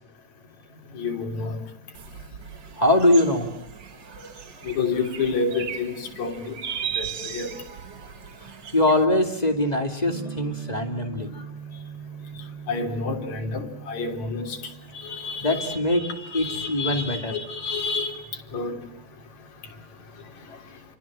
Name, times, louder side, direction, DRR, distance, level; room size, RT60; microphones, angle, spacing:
voice 1, 0.9-1.6 4.6-6.6 7.0-7.5 12.7-14.6 14.9-18.2 18.5-18.8, left 4 dB, 55° left, 4.6 m, -29 dB
sound 1, 1.9-9.1, right 8 dB, 60° right, 1.1 m, -37 dB
voice 2, 2.8-3.5 8.7-11.4 15.4-17.3, left 1 dB, 15° left, 2.4 m, -22 dB
sound 2, 10.0-19.8, right 6 dB, 35° right, 6.9 m, -42 dB
28.5 x 24.5 x 7.5 m
omnidirectional pair, 3.9 m